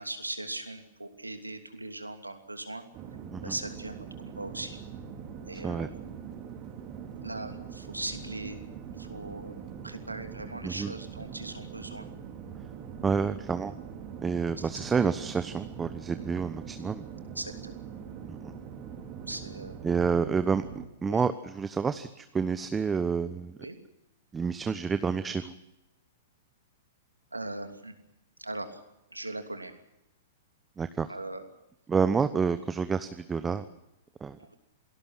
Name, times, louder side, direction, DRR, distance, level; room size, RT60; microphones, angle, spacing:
voice 1, 0.0-2.9 3.4-4.8 5.5-5.9 7.2-8.6 9.0-12.1 14.6-14.8 17.3-17.7 19.3-19.8 21.1-21.2 23.6-23.8 27.3-27.9 28.4-28.8 29.1-29.7 31.1-31.4 34.4-34.6, right 2 dB, 90° right, 6 dB, 2.9 m, -39 dB
sound 1, 2.9-20.9, right 7 dB, 35° right, 4.1 m, -43 dB
voice 2, 13.0-13.7 14.2-17.0 18.4-18.5 19.8-20.6 21.0-23.6 24.3-25.5 30.8-31.1 31.9-33.6 34.2-34.4, right 5 dB, 15° right, 11 dB, 1.0 m, -29 dB
27.5 x 19.0 x 6.1 m, 0.87 s
figure-of-eight pair, 105°, 0 cm